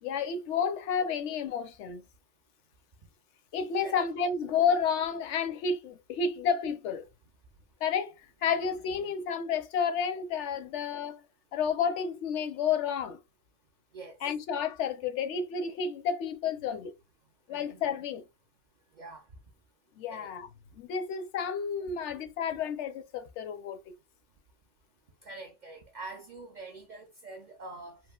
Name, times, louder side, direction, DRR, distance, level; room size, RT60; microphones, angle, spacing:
voice 1, 0.0-2.0 3.5-7.0 7.8-8.1 8.4-11.2 11.5-13.2 14.2-16.9 17.5-18.2 20.0-20.5 20.8-23.9, left 6 dB, 75° left, 0.9 m, -31 dB
voice 2, 17.5-17.8 18.9-19.2 20.1-20.3 25.2-28.0, right 2 dB, 55° right, 0.5 m, -45 dB
3.0 x 2.7 x 2.2 m
omnidirectional pair, 1.2 m